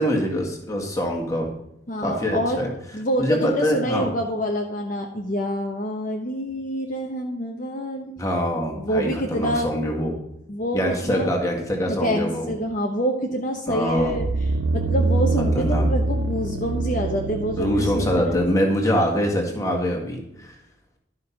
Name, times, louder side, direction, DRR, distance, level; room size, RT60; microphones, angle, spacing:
voice 1, 0.0-1.5 2.0-2.7 3.2-4.1 8.2-10.2 10.7-12.5 13.7-14.2 15.4-15.9 17.6-20.5, equal, 15° left, 0 dB, 1.7 m, -24 dB
voice 2, 1.9-2.6 2.9-8.1 8.8-9.7 10.5-11.3 11.9-14.3 14.7-18.4, equal, 40° left, 1 dB, 1.0 m, -26 dB
sound 1, 14.0-18.4 18.8-18.9, right 2 dB, 90° right, 0.6 m, -24 dB
12.0 x 5.8 x 5.8 m, 0.81 s
head